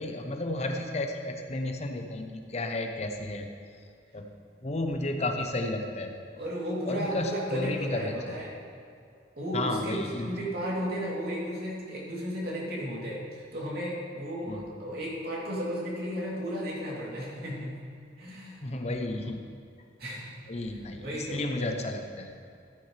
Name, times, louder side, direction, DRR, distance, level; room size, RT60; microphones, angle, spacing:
voice 1, 0.0-3.5 4.1-4.3 4.6-6.2 6.9-8.4 9.5-10.3 14.5-14.7 18.6-19.4 20.5-22.3, left 2 dB, 40° left, 4 dB, 0.7 m, -32 dB
voice 2, 6.4-8.6 9.4-17.7 18.2-18.6 20.0-20.3 20.7-21.4, equal, 60° right, -5 dB, 3.0 m, -34 dB
14.5 x 9.5 x 3.3 m, 2.4 s
head